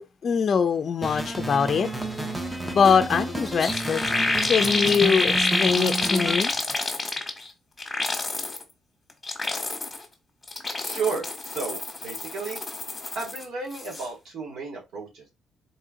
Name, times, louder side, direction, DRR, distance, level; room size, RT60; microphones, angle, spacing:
voice 1, 0.0-1.9 2.6-4.0 4.5-6.5, left 6 dB, 50° left, 0.4 m, -23 dB
sound 1, 1.0-6.3, right 2 dB, 10° right, 0.9 m, -31 dB
sound 2, 3.2-3.3 3.4-7.5 7.8-8.6 9.1-10.0 10.4-13.4 13.7-14.1, left 3 dB, 20° left, 1.4 m, -27 dB
voice 2, 10.8-12.6 13.1-15.2, right 5 dB, 75° right, 2.3 m, -33 dB
4.2 x 2.7 x 3.7 m
cardioid pair, 90°, 0 cm